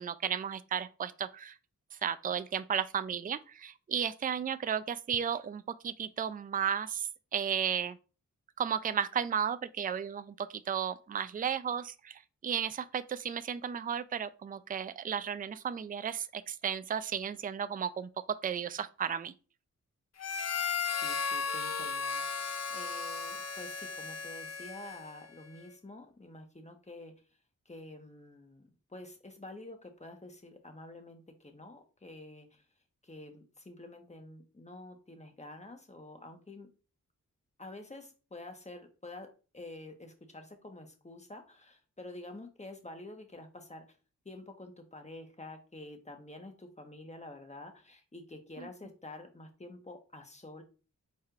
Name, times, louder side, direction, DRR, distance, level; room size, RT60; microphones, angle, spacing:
voice 1, 0.0-1.5 2.0-8.0 8.6-18.1 18.4-19.3 48.6-48.7, right 8 dB, 25° right, 0.4 m, -34 dB
Harmonica, 20.2-25.2, left 5 dB, 55° left, 0.6 m, -35 dB
voice 2, 21.0-27.1 27.6-32.6 33.0-36.7 37.6-43.9 44.2-50.6, left 2 dB, 20° left, 1.2 m, -48 dB
4.8 x 4.3 x 2.4 m
cardioid pair, 50°, 32 cm